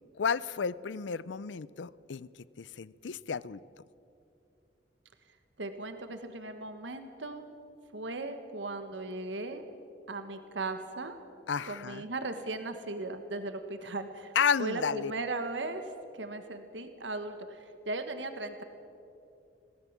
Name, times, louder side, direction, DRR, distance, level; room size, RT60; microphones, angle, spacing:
voice 1, 0.2-2.3 2.6-3.6 11.5-12.1 14.4-15.1, left 6 dB, 85° left, 19 dB, 0.5 m, -32 dB
voice 2, 5.6-7.5 7.9-9.6 10.1-11.2 11.7-14.3 14.6-15.8 16.1-18.6, right 2 dB, 90° right, 8 dB, 1.4 m, -37 dB
21.5 x 17.0 x 7.4 m, 2.7 s
head